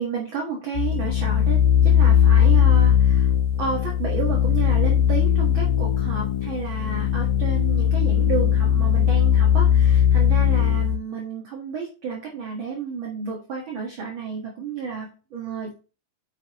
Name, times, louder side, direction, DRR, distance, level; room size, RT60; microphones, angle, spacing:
voice 1, 0.0-3.3 3.6-15.8, right 5 dB, 45° right, -1 dB, 1.9 m, -31 dB
sound 1, 0.8-11.0, left 9 dB, 85° left, 2.6 m, -19 dB
9.0 x 6.7 x 3.0 m, 0.34 s
omnidirectional pair, 4.0 m